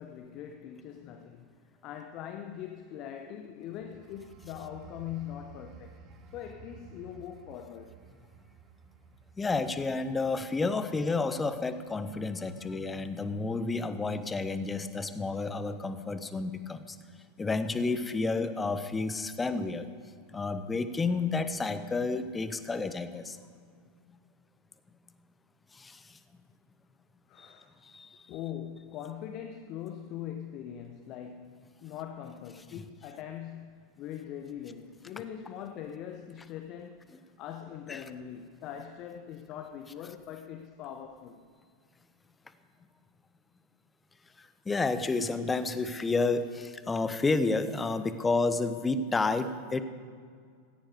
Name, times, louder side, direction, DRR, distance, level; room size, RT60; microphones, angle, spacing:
voice 1, 0.0-1.5 1.8-6.1 6.3-8.0 27.3-27.8 28.3-37.1 37.4-41.5, left 9 dB, 40° left, 0.9 m, -42 dB
sound 1, 3.7-14.1 14.5-14.7, right 7 dB, 40° right, 1.3 m, -55 dB
voice 2, 9.4-17.0 17.4-19.9 20.3-23.4 25.7-26.2 27.4-27.5 27.8-28.3 37.9-38.0 44.4-49.8, left 3 dB, 15° left, 1.0 m, -30 dB
16.5 x 15.5 x 4.9 m
figure-of-eight pair, 85°, 0 cm